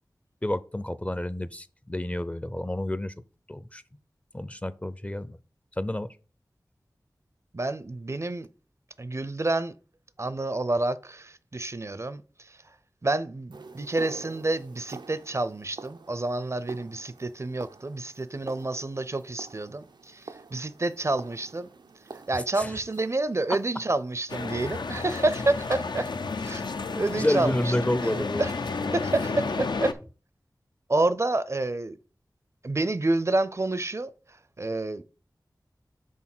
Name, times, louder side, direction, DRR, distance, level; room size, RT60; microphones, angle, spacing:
voice 1, 0.4-3.1 3.5-3.8 4.3-5.4 5.8-6.1 22.3-22.7 27.1-28.4, left 1 dB, 20° left, 0.5 m, -29 dB
voice 2, 7.5-8.5 9.0-9.7 10.2-12.6 13.0-21.7 22.3-26.1 26.4-26.6 27.0-27.7 28.0-28.5 28.9-30.0 30.9-32.0 32.6-34.1 34.6-35.0, right 2 dB, 40° right, 0.5 m, -28 dB
sound 1, 13.5-24.7, right 4 dB, 90° right, 0.5 m, -47 dB
sound 2, 24.3-29.9, left 4 dB, 85° left, 0.6 m, -31 dB
6.3 x 3.6 x 5.9 m
wide cardioid pair, 55°, 7 cm